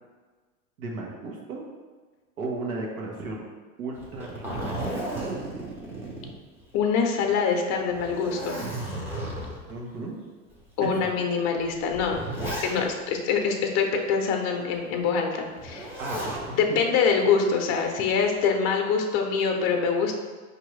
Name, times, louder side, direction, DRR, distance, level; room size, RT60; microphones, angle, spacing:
voice 1, 0.8-1.6 2.4-3.4 3.8-5.0 9.7-10.2 10.8-11.1 16.0-16.6, right 3 dB, 85° right, -1 dB, 1.1 m, -34 dB
Zipper (clothing), 4.0-6.9 7.2-7.3 7.9-9.7 10.5-10.6 11.6-13.1 15.6-16.5 17.8-18.3, right 1 dB, 5° right, 0.7 m, -34 dB
voice 2, 6.7-8.6 10.8-12.2 12.6-15.9 16.6-20.1, left 5 dB, 40° left, 3 dB, 0.6 m, -24 dB
5.1 x 2.7 x 3.1 m, 1.4 s
hypercardioid pair, 115°, 41 cm